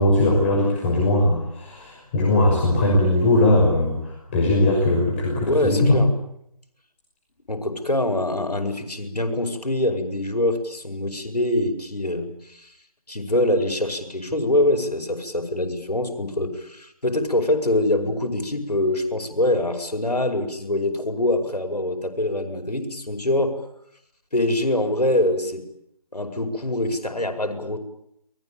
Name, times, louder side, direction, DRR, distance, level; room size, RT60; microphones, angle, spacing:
voice 1, 0.0-6.0, left 1 dB, 20° left, -3 dB, 5.9 m, -20 dB
voice 2, 5.4-6.1 7.5-12.7 13.1-23.6 24.3-25.6 26.1-27.8, left 1 dB, 85° left, 5 dB, 5.4 m, -24 dB
29.5 x 21.5 x 8.9 m, 0.76 s
figure-of-eight pair, 160°, 20 cm